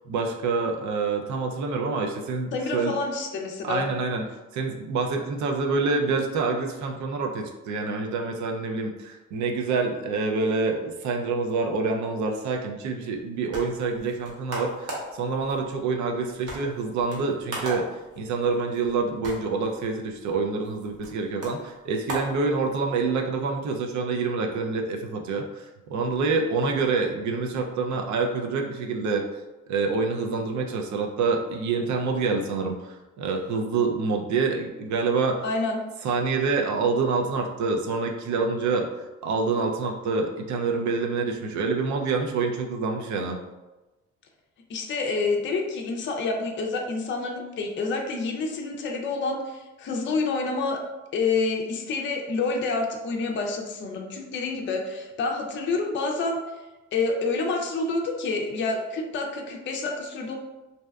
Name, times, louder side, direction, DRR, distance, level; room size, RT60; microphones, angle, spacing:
voice 1, 0.1-2.9 3.6-4.2 4.5-17.9 18.2-29.2 29.7-35.4 36.0-38.9 39.2-43.4, right 4 dB, 70° right, 2 dB, 0.5 m, -27 dB
voice 2, 2.5-3.9 35.4-35.9 44.7-50.8 51.1-56.4 56.9-60.4, left 3 dB, 40° left, 1 dB, 0.4 m, -28 dB
sound 1, 13.1-23.1, right 1 dB, 55° right, 0.9 m, -39 dB
2.6 x 2.2 x 2.2 m, 1.1 s
cardioid pair, 90°, 30 cm